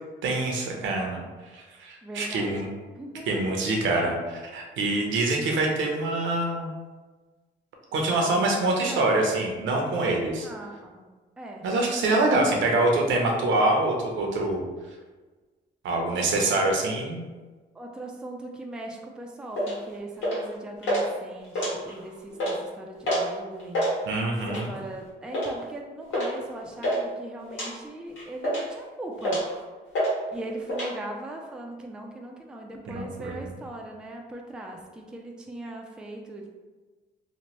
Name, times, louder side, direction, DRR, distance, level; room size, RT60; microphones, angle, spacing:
voice 1, 0.2-1.2 1.5-2.7 3.3-6.7 7.9-10.5 11.6-14.6 15.8-17.2 24.1-24.8 32.9-33.4, right 2 dB, 75° right, 1 dB, 0.7 m, -25 dB
voice 2, 2.0-2.6 2.9-3.3 3.9-4.2 8.4-9.1 10.4-11.1 11.4-11.7 17.7-23.9 24.5-29.4 30.3-36.5, right 1 dB, 5° right, 0 dB, 0.3 m, -39 dB
sound 1, 19.5-19.8 20.2-20.5 20.8-21.0 21.4-22.0 22.3-22.6 23.0-23.3 23.6-23.9 24.5-24.8 25.3-25.5 26.1-26.3 26.6-27.0 27.5-27.7 28.2-28.8 29.2-29.5 29.9-30.1 30.4-30.9, equal, 70° left, 1.3 m, -27 dB
3.0 x 2.1 x 2.9 m, 1.3 s
cardioid pair, 90°, 20 cm